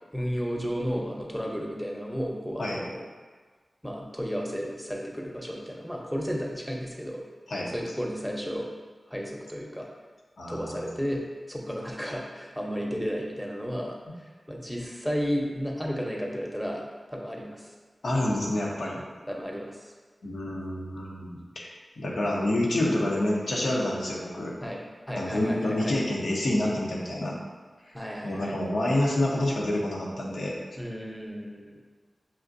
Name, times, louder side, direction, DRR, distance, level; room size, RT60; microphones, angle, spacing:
voice 1, 0.1-3.0 3.8-7.2 7.7-8.7 9.1-9.9 10.5-14.0 14.5-17.7 19.3-19.9 24.6-26.0 27.9-28.6 30.8-31.8, equal, ahead, -1 dB, 0.7 m, -33 dB
voice 2, 10.4-10.9 18.0-19.0 20.2-21.7 22.0-24.5 25.1-27.4 28.2-30.6, left 1 dB, 80° left, -3 dB, 0.8 m, -28 dB
5.8 x 2.5 x 2.6 m, 1.4 s
cardioid pair, 45°, 0 cm